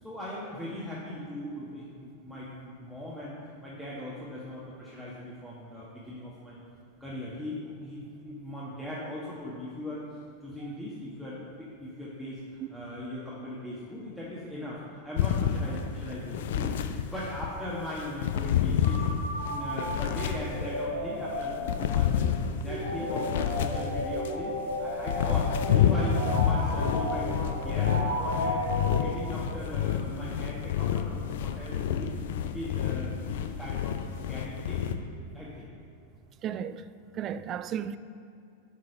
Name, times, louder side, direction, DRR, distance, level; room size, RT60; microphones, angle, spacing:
voice 1, 0.0-6.6 7.0-16.7 17.0-19.0 19.4-22.3 22.6-24.5 24.8-28.7 29.0-32.1 32.4-34.9 35.3-35.7 37.1-37.3, left 1 dB, 5° left, 1.5 m, -39 dB
sound 1, 15.2-17.5 18.0-20.9 21.4-24.4 24.8-34.9, left 9 dB, 55° left, 0.5 m, -29 dB
sound 2, 18.8-29.6, equal, 85° left, 2.3 m, -34 dB
voice 2, 36.4-36.8 37.2-38.0, right 9 dB, 30° right, 0.3 m, -34 dB
11.0 x 4.7 x 5.5 m
figure-of-eight pair, 90°, 0 cm